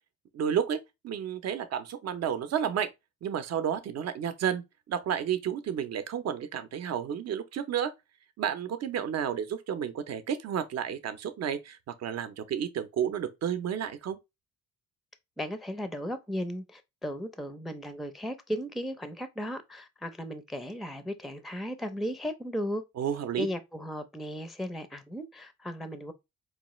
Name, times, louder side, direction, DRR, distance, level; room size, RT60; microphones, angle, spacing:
voice 1, 0.3-2.9 3.2-7.9 8.4-14.2 23.0-23.5, right 8 dB, 55° right, 0.7 m, -31 dB
voice 2, 15.4-22.8 23.4-26.1, equal, ahead, 0.5 m, -36 dB
4.7 x 2.4 x 3.0 m
cardioid pair, 90°, 30 cm